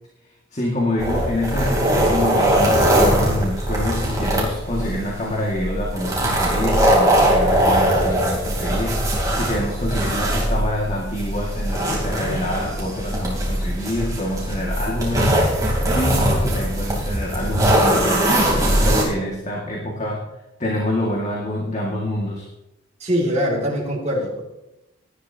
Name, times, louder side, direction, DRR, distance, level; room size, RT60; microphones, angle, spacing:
voice 1, 0.5-9.0 9.3-15.3 15.9-20.2 20.6-22.5, left 1 dB, 35° left, -2 dB, 2.0 m, -26 dB
sound 1, 1.0-19.0, right 1 dB, 15° right, 3.4 m, -20 dB
voice 2, 23.0-24.4, equal, 35° right, -3 dB, 2.4 m, -22 dB
18.0 x 11.0 x 2.9 m, 0.95 s
head